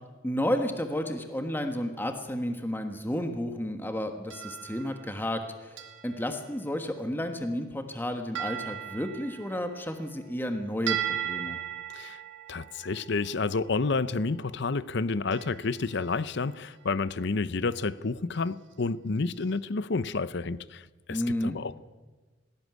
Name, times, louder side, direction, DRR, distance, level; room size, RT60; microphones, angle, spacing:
voice 1, 0.2-5.8 6.0-11.0 11.2-11.6 21.1-21.6, left 1 dB, 10° left, 5 dB, 1.4 m, -31 dB
sound 1, 4.3-5.4 5.8-6.4 8.4-10.5 10.9-14.0 15.3-16.4 16.7-17.2 17.7-17.9 18.3-18.5 19.4-19.5, right 10 dB, 80° right, 2.3 m, -38 dB
voice 2, 12.5-21.8, left 3 dB, 65° left, 16 dB, 0.7 m, -30 dB
19.5 x 16.0 x 9.4 m, 1.3 s
head